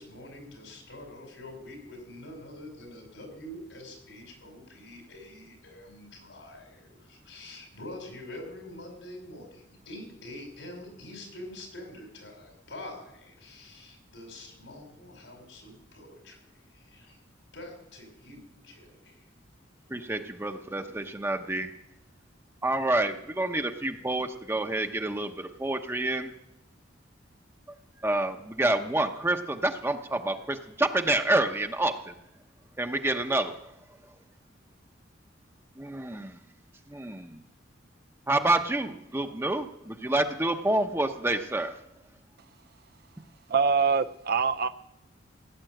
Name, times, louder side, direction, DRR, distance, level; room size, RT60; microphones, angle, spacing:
voice 1, 0.0-17.2 17.5-19.2, left 1 dB, 85° left, 3 dB, 5.1 m, -45 dB
voice 2, 19.9-21.7 22.6-26.3 28.0-32.1 32.8-33.7 35.8-36.4 36.9-37.4 38.3-41.8, right 2 dB, 15° right, 6 dB, 0.8 m, -28 dB
voice 3, 43.5-44.7, right 5 dB, 55° right, 11 dB, 0.5 m, -24 dB
16.5 x 9.6 x 7.8 m, 0.84 s
head